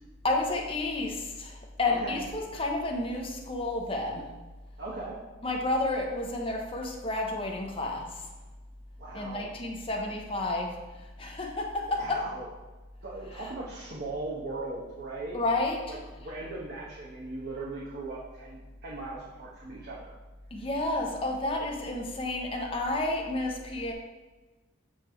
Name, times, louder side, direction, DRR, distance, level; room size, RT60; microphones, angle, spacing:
voice 1, 0.2-4.3 5.4-8.3 9.1-12.2 15.3-16.0 20.5-23.9, left 2 dB, 25° left, 1 dB, 0.8 m, -31 dB
voice 2, 1.9-2.2 4.8-5.2 9.0-9.5 11.9-12.5 13.0-15.3 15.9-20.1, right 2 dB, 55° right, -5 dB, 1.0 m, -39 dB
8.1 x 3.4 x 4.5 m, 1.2 s
head